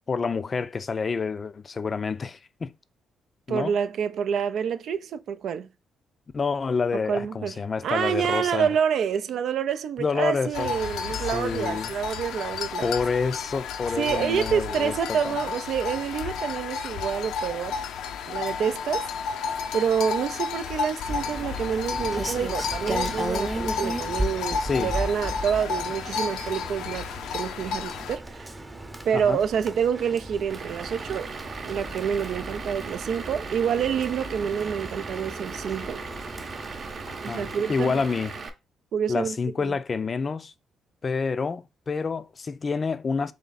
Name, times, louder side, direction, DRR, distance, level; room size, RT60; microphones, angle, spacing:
voice 1, 0.1-2.7 3.5-3.7 6.3-8.7 10.0-10.7 11.3-11.9 12.8-15.4 24.6-24.9 29.1-29.4 37.1-38.4 39.1-40.5 41.0-43.3, left 5 dB, 35° left, 0.4 m, -28 dB
voice 2, 3.5-5.7 6.9-7.5 7.8-12.9 14.0-17.7 18.3-19.1 19.7-28.5 29.0-31.3 31.6-36.0 37.2-38.0 38.9-39.7, right 7 dB, 70° right, 0.4 m, -27 dB
sound 1, 10.5-28.2, left 5 dB, 85° left, 0.5 m, -32 dB
Rain, 21.1-37.6, right 1 dB, 15° right, 0.7 m, -36 dB
Vehicle / Engine, 30.5-38.5, right 4 dB, 50° right, 0.8 m, -38 dB
3.6 x 3.2 x 4.0 m
cardioid pair, 90°, 0 cm